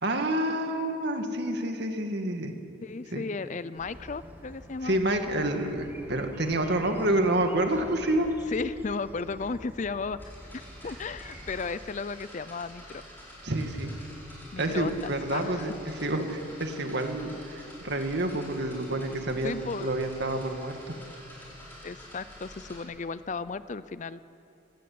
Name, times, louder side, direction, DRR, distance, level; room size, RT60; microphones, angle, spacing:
voice 1, 0.0-2.5 3.1-3.2 4.8-8.4 13.4-13.9 14.6-21.0, right 1 dB, 55° right, 5 dB, 2.2 m, -28 dB
voice 2, 2.8-5.0 8.5-10.2 10.5-13.0 14.5-15.7 19.4-19.9 21.8-24.2, left 4 dB, 35° left, 15 dB, 0.5 m, -35 dB
sound 1, 3.8-11.6, equal, 10° right, 1.8 m, -48 dB
sound 2, 10.1-22.8, equal, 10° left, 6.5 m, -48 dB
26.0 x 17.0 x 8.7 m, 2.8 s
head